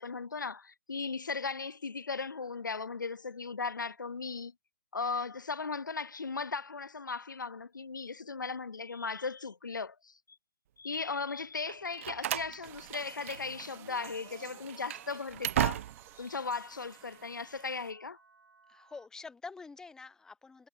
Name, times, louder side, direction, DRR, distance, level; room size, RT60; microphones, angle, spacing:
voice 1, 0.0-4.5 4.9-10.4 10.8-15.8 16.1-18.2, left 4 dB, 90° left, 0.6 m, -37 dB
Slam, 11.7-13.7 13.9-14.1 14.6-16.2, right 12 dB, 45° right, 0.4 m, -35 dB
heavy stream with birds, 12.6-17.9, right 17 dB, 25° right, 2.7 m, -55 dB
sound 1, 13.3-19.1, right 4 dB, 80° right, 5.4 m, -58 dB
voice 2, 18.7-20.7, left 4 dB, 5° left, 0.9 m, -47 dB
figure-of-eight pair, 135°, 10 cm